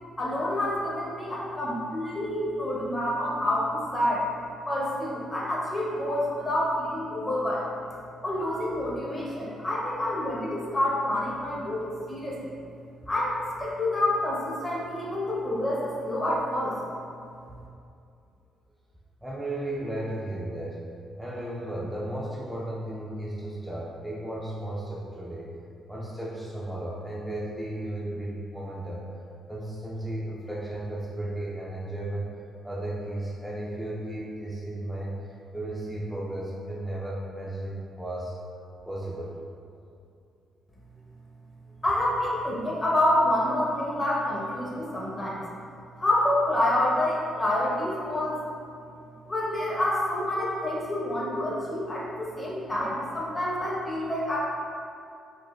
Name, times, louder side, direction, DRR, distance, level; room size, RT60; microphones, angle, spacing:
voice 1, 0.2-4.3 4.7-7.7 8.2-12.4 13.1-16.8 41.8-45.4 46.0-48.3 49.3-54.4, left 1 dB, 25° left, -5 dB, 0.8 m, -27 dB
voice 2, 19.2-20.8 21.2-25.5 25.9-29.1 29.5-32.3 32.6-38.3 38.8-39.3, right 1 dB, 5° right, -6 dB, 0.4 m, -34 dB
4.2 x 2.4 x 2.3 m, 2.5 s
cardioid pair, 90°, 0 cm